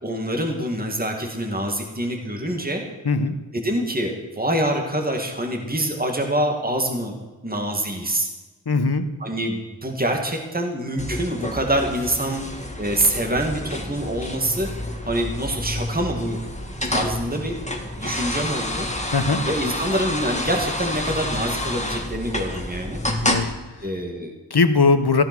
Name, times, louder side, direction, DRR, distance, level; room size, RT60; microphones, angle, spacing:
voice 1, 0.0-2.8 3.5-7.1 7.4-8.3 9.2-12.4 12.8-14.7 15.0-16.4 16.8-17.6 18.0-18.9 19.4-23.0 23.8-24.3, right 1 dB, 20° right, 2 dB, 2.2 m, -25 dB
voice 2, 8.7-9.1 19.1-19.4 23.2-23.5 24.5-25.2, left 4 dB, 55° left, 10 dB, 1.3 m, -19 dB
sound 1, 11.0-23.5, left 1 dB, 15° left, 1.8 m, -29 dB
15.0 x 11.0 x 6.2 m, 1.2 s
wide cardioid pair, 55°, 45 cm